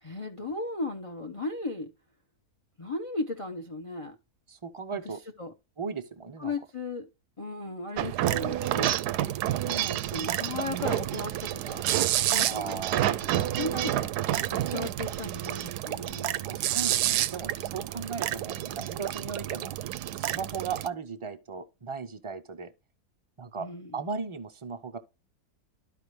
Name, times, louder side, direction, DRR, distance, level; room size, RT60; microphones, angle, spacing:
voice 1, 0.0-1.9 2.8-4.2 4.9-5.0 5.4-5.5 6.4-7.1 7.4-8.9 9.6-11.9 12.2-13.0 13.3-14.1 14.5-16.5 23.5-24.0, left 2 dB, 30° left, 0.6 m, -36 dB
voice 2, 4.5-5.2 5.8-6.5 12.5-13.2 16.4-19.8 20.1-22.7 23.4-25.0, right 5 dB, 40° right, 0.4 m, -37 dB
sound 1, 8.0-20.9, right 13 dB, 85° right, 1.1 m, -29 dB
13.0 x 4.9 x 3.1 m
omnidirectional pair, 1.7 m